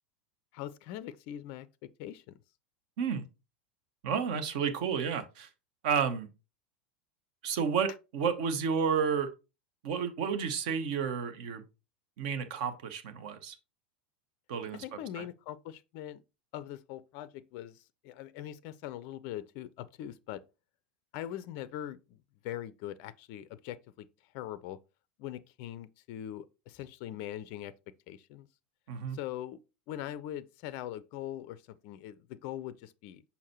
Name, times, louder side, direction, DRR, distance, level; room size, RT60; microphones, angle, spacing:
voice 1, 0.5-2.4 14.7-16.2 16.5-20.4 21.1-22.2 22.4-24.1 24.3-24.8 25.2-27.7 28.1-28.5 29.1-29.6 29.9-33.2, left 12 dB, 45° left, 0.4 m, -42 dB
voice 2, 4.0-5.5 5.8-6.3 7.4-9.3 9.8-11.6 12.2-13.6 14.5-14.8 15.1-15.3 28.9-29.2, right 6 dB, 55° right, 1.0 m, -31 dB
6.3 x 5.5 x 2.9 m
figure-of-eight pair, 85°, 6 cm